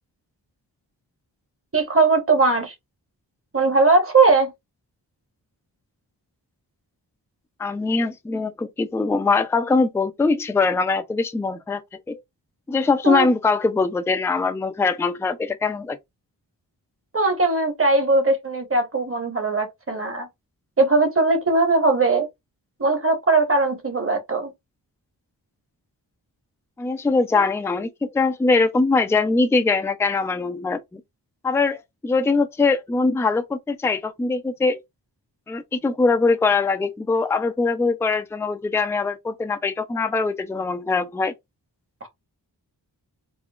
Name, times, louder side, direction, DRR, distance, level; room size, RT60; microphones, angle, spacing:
voice 1, 1.7-2.7 3.5-4.5 13.0-13.3 17.1-20.3 20.8-22.3 22.8-24.5 42.0-42.1, right 3 dB, 30° right, 1.1 m, -19 dB
voice 2, 7.6-11.8 12.1-12.2 12.7-16.0 26.8-31.0 31.4-34.8 35.5-41.3, left 4 dB, 5° left, 0.4 m, -22 dB
3.7 x 2.0 x 2.3 m
cardioid pair, 40°, 44 cm